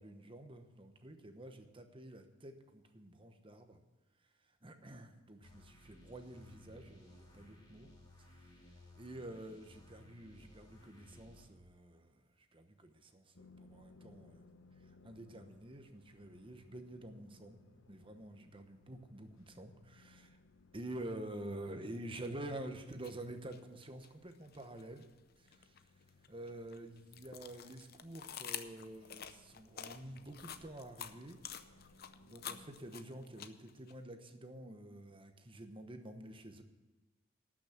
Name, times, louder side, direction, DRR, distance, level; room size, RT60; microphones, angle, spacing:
voice 1, 0.0-3.8 4.6-7.9 8.3-8.5 8.9-12.2 12.5-14.5 15.0-17.6 17.9-20.4 20.7-25.0 25.4-25.7 26.3-31.4 32.3-36.6, right 1 dB, 25° right, 7 dB, 1.0 m, -48 dB
sound 1, 5.4-11.5, left 1 dB, 20° left, 2.5 m, -59 dB
sound 2, 13.3-32.9, left 2 dB, 85° left, 1.0 m, -64 dB
sound 3, 22.9-23.1 23.5-25.1 25.5-33.9, left 9 dB, 50° left, 0.6 m, -48 dB
12.0 x 6.2 x 8.7 m, 1.2 s
head